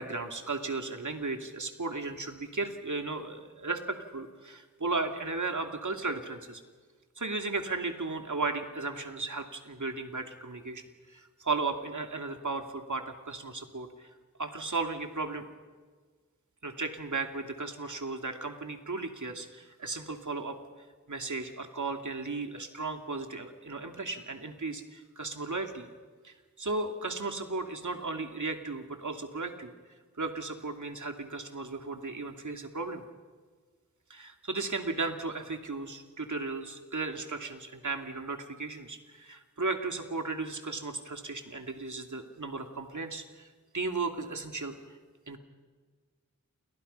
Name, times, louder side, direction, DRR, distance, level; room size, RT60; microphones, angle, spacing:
voice 1, 0.0-6.6 7.2-10.8 11.1-14.1 14.4-15.4 16.6-20.6 21.1-25.9 26.2-29.7 30.2-33.0 34.1-43.5 43.7-45.0 45.3-45.4, right 3 dB, 75° right, 4 dB, 2.6 m, -35 dB
29.5 x 29.0 x 5.6 m, 1.5 s
wide cardioid pair, 50°, 30 cm